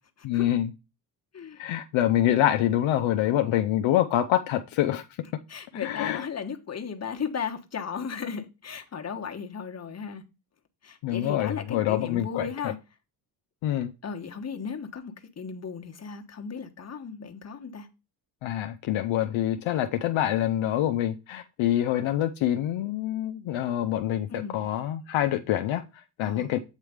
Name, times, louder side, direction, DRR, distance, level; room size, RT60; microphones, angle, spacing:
voice 1, 0.2-0.7 1.6-5.0 5.7-6.3 11.0-12.7 13.6-13.9 18.4-26.6, left 12 dB, 70° left, 0.7 m, -26 dB
voice 2, 5.5-10.2 10.8-12.8 14.0-17.9 24.3-24.6 26.2-26.5, left 6 dB, 30° left, 1.2 m, -36 dB
8.3 x 3.1 x 5.0 m
supercardioid pair, 60°, 50 cm